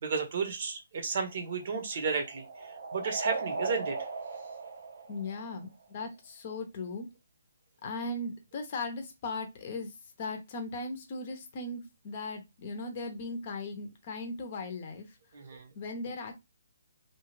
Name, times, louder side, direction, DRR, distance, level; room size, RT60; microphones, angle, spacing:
voice 1, 0.0-4.0 15.3-15.7, right 5 dB, 45° right, 0.9 m, -33 dB
sound 1, 1.1-5.9, right 4 dB, 75° right, 0.8 m, -38 dB
voice 2, 5.1-7.1 7.8-15.2 15.7-16.3, left 2 dB, 35° left, 0.7 m, -38 dB
2.7 x 2.3 x 3.1 m
hypercardioid pair, 160°, 0 cm